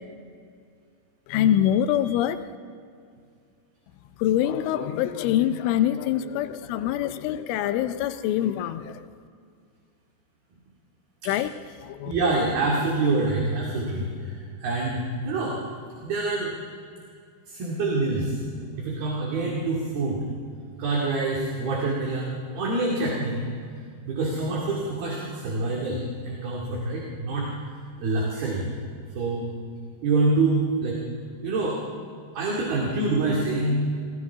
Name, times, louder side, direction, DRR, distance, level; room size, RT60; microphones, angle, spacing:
voice 1, 1.3-2.4 4.2-9.1 11.3-11.5 11.8-12.1, left 11 dB, 85° left, 10 dB, 3.2 m, -24 dB
voice 2, 12.1-15.6 16.0-16.5 17.5-20.2 20.8-23.4 24.1-28.7 29.1-29.5 30.0-31.0 31.4-31.8 32.3-33.9, right 2 dB, 55° right, -4 dB, 4.0 m, -26 dB
29.0 x 24.5 x 3.6 m, 2.2 s
omnidirectional pair, 5.5 m